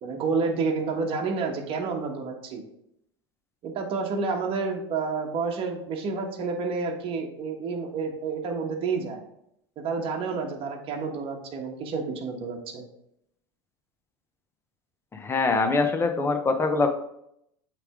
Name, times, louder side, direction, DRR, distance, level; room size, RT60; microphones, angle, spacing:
voice 1, 0.0-2.6 3.6-9.2 9.8-12.8, right 4 dB, 45° right, 2 dB, 1.3 m, -29 dB
voice 2, 15.1-16.9, left 3 dB, 20° left, 6 dB, 0.8 m, -23 dB
8.1 x 3.4 x 3.6 m, 0.76 s
supercardioid pair, 105°, 13 cm